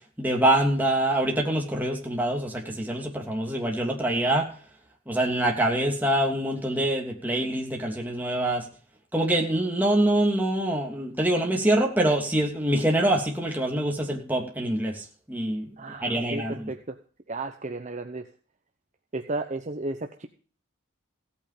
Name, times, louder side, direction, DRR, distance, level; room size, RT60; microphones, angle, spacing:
voice 1, 0.2-4.5 5.1-8.6 9.1-15.7 16.0-16.7, right 1 dB, 10° right, 0 dB, 2.9 m, -25 dB
voice 2, 15.8-17.0 17.3-18.3 19.1-20.3, right 2 dB, 35° right, 5 dB, 0.9 m, -33 dB
16.5 x 8.8 x 5.0 m, 0.41 s
head